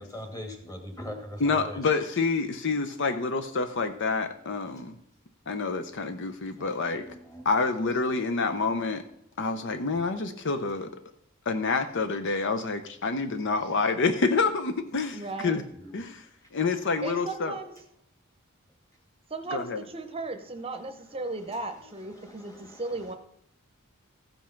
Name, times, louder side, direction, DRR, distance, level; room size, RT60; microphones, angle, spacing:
voice 1, 0.0-1.8 3.8-3.9 6.6-7.5 15.8-15.9 22.5-22.6, left 1 dB, 15° left, 3 dB, 2.0 m, -41 dB
voice 2, 1.4-5.0 5.5-7.0 7.4-9.0 9.4-10.9 11.5-15.6 15.9-16.2 16.5-17.5 19.5-19.8, left 4 dB, 60° left, 9 dB, 0.7 m, -28 dB
voice 3, 15.1-15.6 17.0-17.8 19.3-23.1, right 3 dB, 25° right, 8 dB, 0.8 m, -36 dB
14.5 x 5.4 x 5.8 m, 0.72 s
head